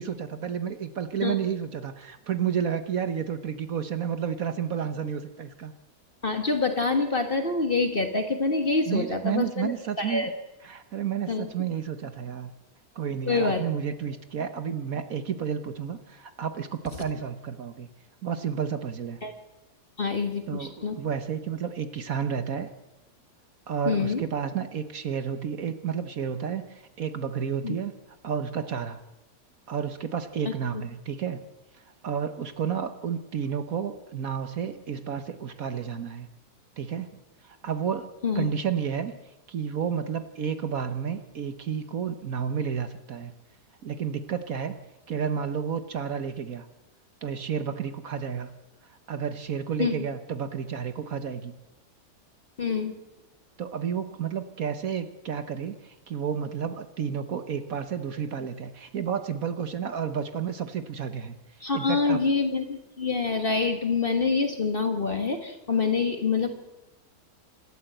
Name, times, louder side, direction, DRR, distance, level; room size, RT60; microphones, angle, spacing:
voice 1, 0.0-5.7 8.8-10.3 10.6-12.5 12.9-17.9 18.2-19.2 20.5-22.7 23.7-27.9 28.2-29.0 29.7-31.4 31.7-36.3 36.8-37.2 37.4-39.1 39.5-43.3 43.8-46.7 47.2-48.5 49.1-51.5 53.6-61.4 61.7-62.2, right 7 dB, 60° right, 9 dB, 1.5 m, -31 dB
voice 2, 6.2-10.3 11.3-11.5 13.3-13.6 19.2-19.3 20.0-21.0 23.9-24.2 27.6-27.8 30.7-30.8 38.2-38.5 49.8-49.9 52.6-52.9 61.6-66.5, left 4 dB, 35° left, 6 dB, 1.7 m, -26 dB
26.0 x 13.0 x 7.9 m, 0.99 s
omnidirectional pair, 1.7 m